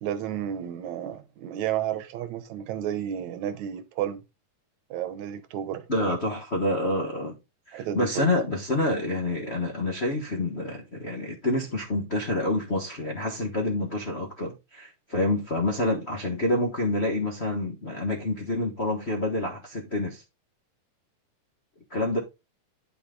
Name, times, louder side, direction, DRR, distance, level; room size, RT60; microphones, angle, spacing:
voice 1, 0.0-4.2 4.9-6.2 7.7-8.3, right 10 dB, 75° right, 2.1 m, -32 dB
voice 2, 5.9-7.4 7.7-20.2 21.9-22.2, left 2 dB, 65° left, 0.6 m, -27 dB
9.6 x 5.7 x 3.8 m
omnidirectional pair, 3.5 m